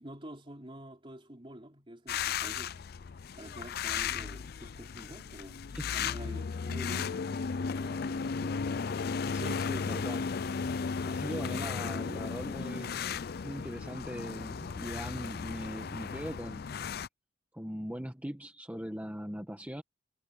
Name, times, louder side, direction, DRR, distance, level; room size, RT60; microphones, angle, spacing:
voice 1, 0.0-2.8 3.3-5.6 5.9-8.6, right 1 dB, 25° right, 3.2 m, -48 dB
sound 1, 2.1-17.1, left 6 dB, 50° left, 0.4 m, -35 dB
voice 2, 5.7-6.1 9.3-10.3 11.0-13.0 13.4-16.7 17.5-19.8, equal, 10° right, 1.7 m, -40 dB
head